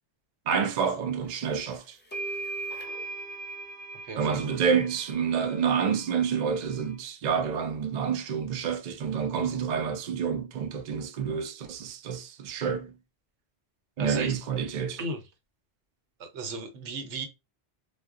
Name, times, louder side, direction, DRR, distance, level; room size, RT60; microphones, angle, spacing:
voice 1, 0.5-2.0 4.2-13.0 14.0-15.0, right 6 dB, 55° right, 0.5 m, -28 dB
sound 1, 1.5-1.6 2.1-6.9, right 2 dB, 15° left, 0.4 m, -39 dB
voice 2, 4.0-4.4 14.0-14.3 15.0-15.2 16.2-17.3, right 3 dB, 80° right, 1.0 m, -35 dB
2.3 x 2.0 x 3.5 m
omnidirectional pair, 1.2 m